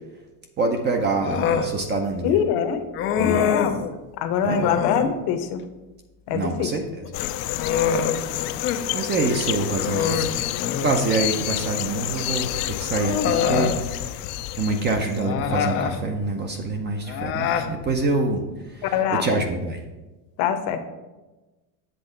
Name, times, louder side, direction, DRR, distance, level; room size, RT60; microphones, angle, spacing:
voice 1, 0.6-2.4 3.2-3.5 4.4-4.7 6.3-7.1 8.9-10.3 10.8-14.2 14.6-18.4 18.7-19.8, right 3 dB, 25° right, 4 dB, 0.5 m, -26 dB
Human voice, 1.2-1.7 2.9-3.8 4.6-5.1 7.0-8.8 9.2-9.3 9.8-11.0 12.2-12.3 13.0-13.8 15.2-16.0 17.1-17.7, left 7 dB, 30° left, 0.4 m, -25 dB
voice 2, 2.2-2.8 3.2-5.6 6.3-6.7 18.9-19.3 20.4-20.8, left 8 dB, 50° left, 8 dB, 0.8 m, -24 dB
sound 1, 7.1-15.3, left 15 dB, 80° left, 0.5 m, -29 dB
7.8 x 3.5 x 6.5 m, 1.1 s
supercardioid pair, 145°, 47 cm